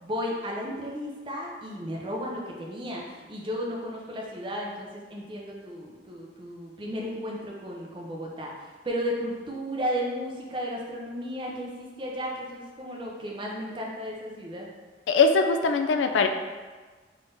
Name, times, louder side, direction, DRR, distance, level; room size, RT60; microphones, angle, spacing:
voice 1, 0.0-8.5 8.8-14.7, equal, 30° right, -2 dB, 0.5 m, -34 dB
voice 2, 15.1-16.3, left 4 dB, 90° left, 7 dB, 0.3 m, -21 dB
3.7 x 3.4 x 2.6 m, 1.4 s
head